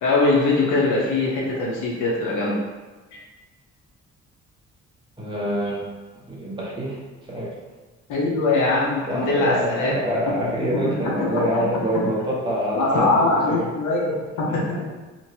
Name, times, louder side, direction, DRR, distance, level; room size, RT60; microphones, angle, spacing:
voice 1, 0.0-2.5 8.1-9.9 11.3-11.4 12.7-14.6, left 2 dB, 85° left, -3 dB, 0.9 m, -21 dB
voice 2, 5.2-5.9 6.1-7.0 7.3-7.6 9.1-13.7 14.5-14.9, equal, 15° right, -5 dB, 0.9 m, -26 dB
3.0 x 2.6 x 2.8 m, 1.3 s
cardioid pair, 90°, 30 cm